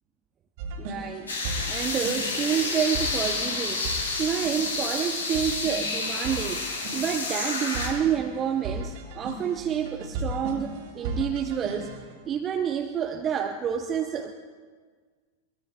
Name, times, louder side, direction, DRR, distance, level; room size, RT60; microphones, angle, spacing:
sound 1, 0.6-12.1, right 1 dB, 50° right, 2.8 m, -37 dB
voice 1, 0.8-11.9 12.3-14.3, right 8 dB, 25° right, 4 dB, 0.7 m, -29 dB
sound 2, 1.3-7.9, left 3 dB, 70° left, 3.4 m, -30 dB
22.5 x 20.0 x 2.3 m, 1.5 s
figure-of-eight pair, 90°, 0 cm